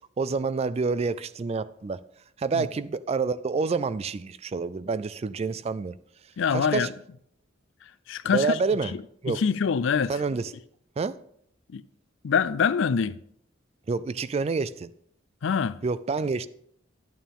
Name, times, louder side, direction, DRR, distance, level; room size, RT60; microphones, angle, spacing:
voice 1, 0.2-2.0 2.4-6.0 6.5-6.9 8.2-8.9 9.2-9.4 10.1-10.5 11.0-11.2 13.9-14.9 15.8-16.5, right 4 dB, 30° right, 0.3 m, -28 dB
voice 2, 6.4-6.9 8.1-8.6 9.3-10.1 11.7-11.8 12.2-13.2 15.4-15.8, left 6 dB, 65° left, 0.4 m, -24 dB
11.5 x 9.1 x 3.5 m
head